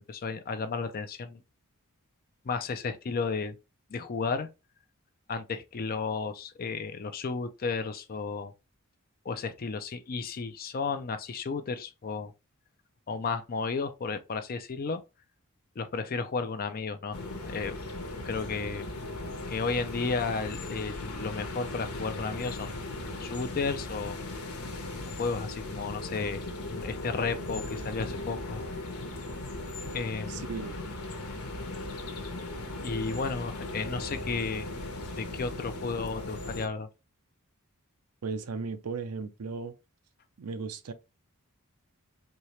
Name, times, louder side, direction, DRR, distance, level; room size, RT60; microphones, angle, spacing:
voice 1, 0.0-1.4 2.5-3.6 3.9-4.5 5.3-8.5 9.2-12.3 13.1-15.0 15.8-17.8 18.3-18.9 19.5-22.7 23.2-24.2 25.2-26.4 26.7-28.6 29.9-30.5 32.8-34.7 35.2-36.9, left 4 dB, 40° left, 0.4 m, -33 dB
sound 1, 17.1-36.7, left 2 dB, 90° left, 1.2 m, -38 dB
voice 2, 30.3-30.8 38.2-39.7 40.4-40.9, right 4 dB, 85° right, 0.5 m, -36 dB
4.4 x 2.8 x 3.1 m
head